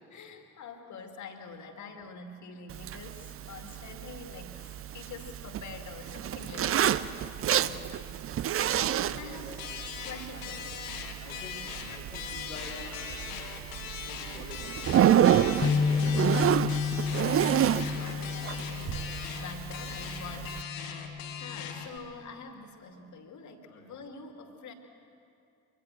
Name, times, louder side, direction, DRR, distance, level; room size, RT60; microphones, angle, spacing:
voice 1, 0.1-8.1 8.8-9.7 10.0-10.8 15.3-15.8 17.2-24.7, left 4 dB, 45° left, 5 dB, 2.4 m, -46 dB
Zipper (clothing), 2.7-20.6, right 10 dB, 35° right, 0.6 m, -30 dB
voice 2, 9.1-9.6 11.2-13.5 13.9-16.7 17.0-17.1 23.7-24.0, left 2 dB, 85° left, 0 dB, 2.5 m, -47 dB
sound 1, 9.6-22.0, left 8 dB, 70° left, 1.9 m, -40 dB
sound 2, 15.6-21.9, left 5 dB, 25° left, 1.3 m, -31 dB
25.0 x 22.5 x 6.3 m, 2.4 s
figure-of-eight pair, 50°, 41 cm